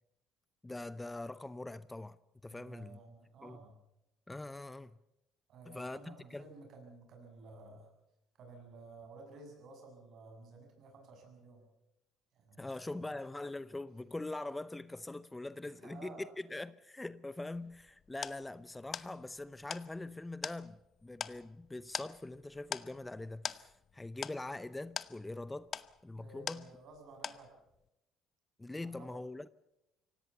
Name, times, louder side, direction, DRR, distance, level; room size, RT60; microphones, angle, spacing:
voice 1, 0.6-2.2 2.4-3.0 3.4-3.6 4.3-5.0 5.7-6.5 12.6-26.7 28.6-29.5, left 2 dB, 15° left, 0.7 m, -43 dB
voice 2, 2.5-3.7 5.5-7.9 8.4-11.7 12.3-13.2 15.6-16.3 26.2-27.5 28.8-29.1, right 3 dB, 60° right, 7.3 m, -54 dB
sound 1, 17.5-27.0 27.2-27.8, left 7 dB, 45° left, 0.9 m, -44 dB
25.0 x 17.5 x 7.0 m
hypercardioid pair, 60°, 0 cm